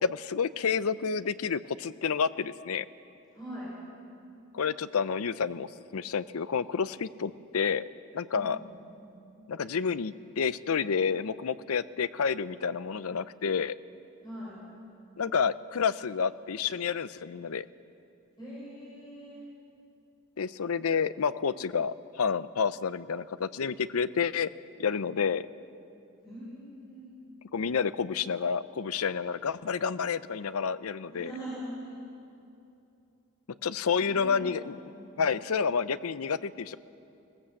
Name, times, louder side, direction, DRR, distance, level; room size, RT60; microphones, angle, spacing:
voice 1, 0.0-2.9 4.5-7.8 8.1-8.6 9.5-13.8 15.2-17.7 20.4-24.5 24.8-25.5 27.5-31.3 33.6-34.8 35.2-36.8, left 6 dB, 75° left, 15 dB, 0.5 m, -29 dB
voice 2, 3.3-3.7 8.3-8.6 14.2-14.6 18.4-19.4 26.2-27.1 31.1-31.9 33.9-35.2, equal, 20° left, -8 dB, 5.8 m, -42 dB
20.0 x 18.0 x 7.6 m, 2.7 s
head